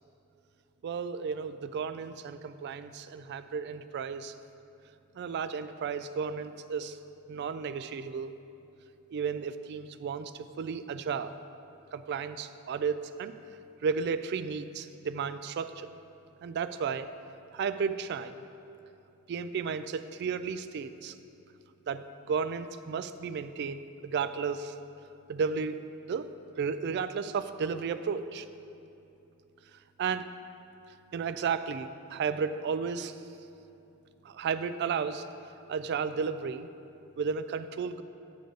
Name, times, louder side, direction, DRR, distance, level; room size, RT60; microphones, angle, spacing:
voice 1, 0.8-4.3 5.2-7.0 7.3-8.3 9.1-11.4 11.9-13.3 13.8-15.9 16.4-17.1 17.5-18.4 19.3-21.1 21.9-24.7 25.3-25.8 26.1-26.3 26.6-28.5 30.0-30.3 31.1-33.1 34.2-35.3 35.7-36.7 37.2-38.0, right 6 dB, 50° right, 12 dB, 0.3 m, -33 dB
9.5 x 3.8 x 6.8 m, 2.9 s
head